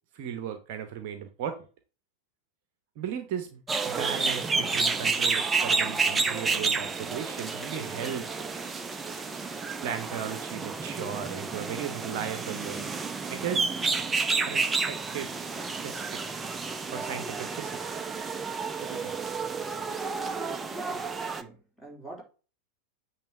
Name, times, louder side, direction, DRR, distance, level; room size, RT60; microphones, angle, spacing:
voice 1, 0.1-1.6 3.0-3.6 3.8-8.3 9.8-12.9 13.3-13.8 14.4-15.3 15.8-16.2 16.9-17.8 18.8-19.2, right 8 dB, 45° right, 1.0 m, -36 dB
sound 1, 3.7-21.4, right 4 dB, 15° right, 0.7 m, -30 dB
voice 2, 20.7-22.2, right 2 dB, 5° left, 3.8 m, -46 dB
8.8 x 3.3 x 6.2 m
figure-of-eight pair, 90°, 0 cm